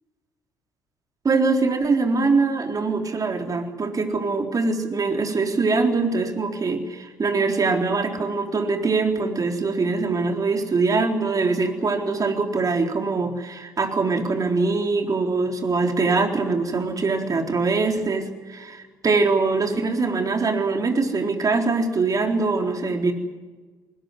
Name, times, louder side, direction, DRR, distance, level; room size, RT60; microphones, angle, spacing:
voice 1, 1.2-23.1, right 3 dB, 35° right, 4 dB, 3.9 m, -23 dB
21.0 x 19.0 x 9.5 m, 1.3 s
figure-of-eight pair, 50°, 10 cm